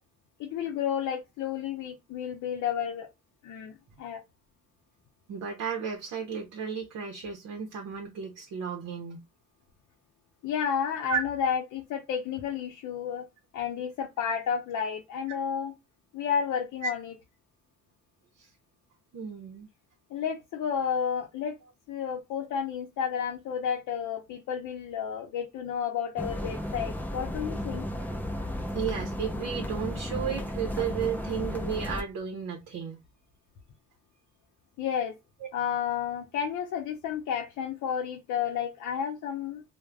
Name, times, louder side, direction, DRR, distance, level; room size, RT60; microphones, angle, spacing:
voice 1, 0.4-3.1 3.4-4.2 10.4-13.3 13.5-15.7 16.1-17.1 20.1-21.5 21.9-27.8 34.8-35.2 35.5-39.6, left 8 dB, 75° left, 0.6 m, -31 dB
voice 2, 5.3-9.2 11.1-11.2 16.8-16.9 18.4-18.5 19.1-19.7 28.7-33.0, right 7 dB, 65° right, 0.7 m, -33 dB
sound 1, 26.2-32.0, left 1 dB, 5° left, 0.5 m, -34 dB
2.3 x 2.1 x 3.2 m
cardioid pair, 90°, 30 cm